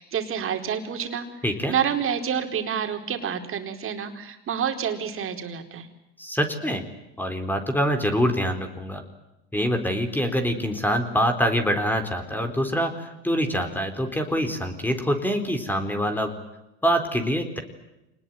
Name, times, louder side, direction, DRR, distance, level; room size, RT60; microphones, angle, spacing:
voice 1, 0.0-1.4 1.7-5.9, right 8 dB, 40° right, 5 dB, 4.5 m, -28 dB
voice 2, 1.4-1.7 6.2-6.8 7.2-9.0 9.5-16.4 16.8-17.6, equal, 5° left, 6 dB, 4.1 m, -25 dB
26.5 x 20.0 x 9.2 m, 0.93 s
supercardioid pair, 100°, 32 cm